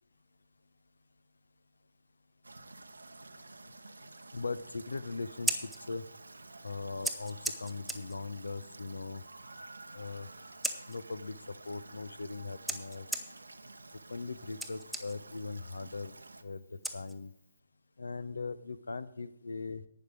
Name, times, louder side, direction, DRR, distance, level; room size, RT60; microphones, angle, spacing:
sound 1, 2.4-16.4, right 2 dB, 85° right, 0.8 m, -51 dB
voice 1, 4.3-6.0 6.6-9.2 9.9-10.3 10.9-11.4 11.6-13.1 14.1-16.2 16.4-16.6 16.9-17.3 18.0-19.8, left 3 dB, 80° left, 16 dB, 0.7 m, -39 dB
Scissors, 5.2-17.6, right 1 dB, ahead, 0.8 m, -42 dB
11.5 x 8.9 x 5.0 m, 0.76 s
figure-of-eight pair, 135°, 0 cm